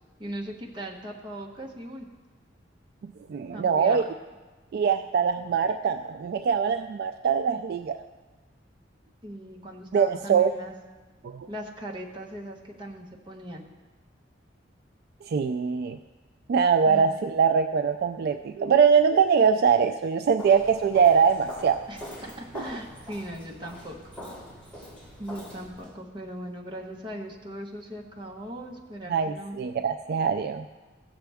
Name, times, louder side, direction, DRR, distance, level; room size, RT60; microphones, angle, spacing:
voice 1, 0.2-2.1 3.5-4.0 9.2-10.7 11.5-13.7 16.8-17.1 21.9-24.0 25.2-29.6, right 1 dB, 25° right, -1 dB, 1.2 m, -39 dB
voice 2, 3.0-4.0 4.7-8.0 9.9-10.5 11.2-11.5 15.2-16.0 16.5-21.8 29.1-30.6, right 6 dB, 55° right, 8 dB, 0.3 m, -23 dB
Walk footsteps, 20.4-25.9, left 1 dB, 10° left, 3.0 m, -43 dB
15.5 x 6.9 x 3.5 m, 1.3 s
head